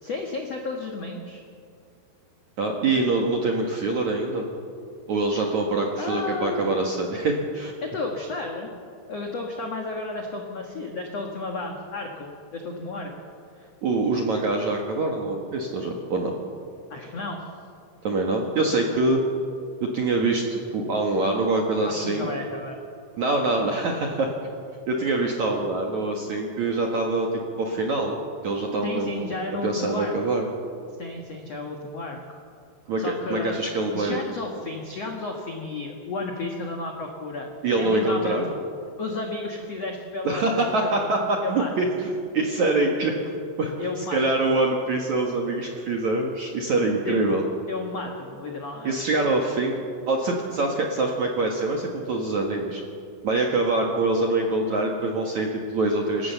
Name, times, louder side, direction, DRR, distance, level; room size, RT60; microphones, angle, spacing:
voice 1, 0.0-1.4 6.0-6.7 7.8-8.7 9.1-13.1 13.6-13.7 16.9-17.4 21.8-22.8 28.8-30.1 31.0-32.4 33.0-33.5 33.9-37.5 37.8-38.4 39.0-41.7 43.8-44.2 47.0-47.4 47.7-49.0, left 3 dB, 75° left, 1 dB, 1.5 m, -33 dB
voice 2, 2.6-4.4 5.1-7.7 13.8-16.3 18.0-19.2 19.8-22.3 23.2-24.3 24.9-28.2 28.4-29.3 29.6-30.5 32.9-34.2 37.6-38.5 40.2-43.1 43.6-47.4 48.8-49.8 50.1-52.8 53.2-56.3, right 2 dB, 60° right, 1 dB, 2.0 m, -24 dB
27.5 x 15.5 x 7.0 m, 2.4 s
omnidirectional pair, 5.6 m